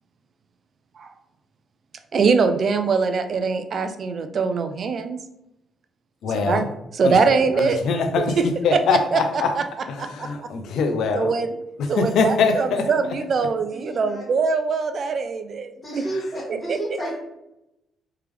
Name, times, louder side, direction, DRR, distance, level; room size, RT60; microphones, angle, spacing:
voice 1, 2.1-5.2 6.4-6.7 6.9-7.8 8.2-8.5 8.7-9.2 9.6-9.7 10.0-10.5 11.1-11.6 11.9-16.0 16.5-17.0, right 5 dB, 50° right, 9 dB, 0.4 m, -23 dB
voice 2, 6.2-6.7 7.0-8.4 8.6-9.5 9.9-11.4 11.8-12.9 16.1-16.3, left 5 dB, 75° left, 7 dB, 0.5 m, -23 dB
voice 3, 13.9-14.2 15.8-17.1, right 1 dB, 30° left, -7 dB, 1.4 m, -31 dB
3.4 x 3.2 x 3.3 m, 0.86 s
cardioid pair, 90°, 0 cm